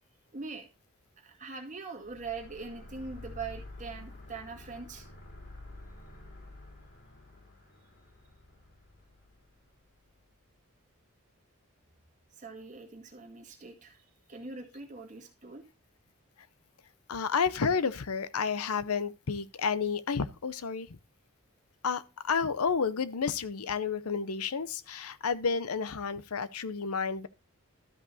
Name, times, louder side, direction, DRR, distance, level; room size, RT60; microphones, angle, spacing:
voice 1, 0.3-0.7 1.2-5.1 12.4-15.6, right 4 dB, 35° right, 2.0 m, -42 dB
sound 1, 2.0-10.3, left 2 dB, 50° left, 3.9 m, -49 dB
voice 2, 17.1-21.0 21.8-27.3, left 5 dB, 85° left, 0.7 m, -31 dB
13.0 x 5.4 x 4.1 m
head